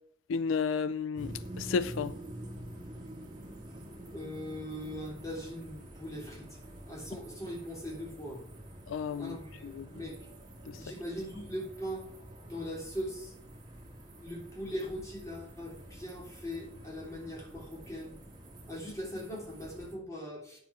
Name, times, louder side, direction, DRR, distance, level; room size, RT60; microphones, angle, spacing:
voice 1, 0.3-2.1 8.9-9.4 9.6-9.9 10.7-10.8, left 5 dB, 85° left, 0.4 m, -32 dB
sound 1, 1.1-19.9, right 1 dB, 20° right, 2.0 m, -48 dB
voice 2, 4.1-6.6 6.9-8.4 9.2-10.3 10.7-12.1 12.4-13.3 14.2-18.1 18.7-20.6, equal, 15° left, 3.3 m, -40 dB
9.2 x 7.0 x 5.9 m
head